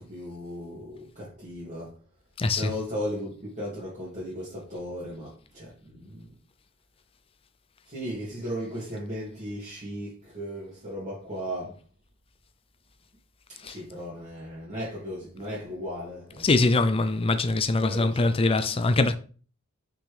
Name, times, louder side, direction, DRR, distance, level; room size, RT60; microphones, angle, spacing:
voice 1, 0.0-1.9 2.5-6.3 7.9-11.8 13.5-16.5 17.8-18.3, equal, 35° right, 2.5 m, -36 dB
voice 2, 2.4-2.7 13.6-13.8 16.4-19.2, left 3 dB, 25° left, 0.4 m, -23 dB
6.1 x 6.1 x 3.4 m
head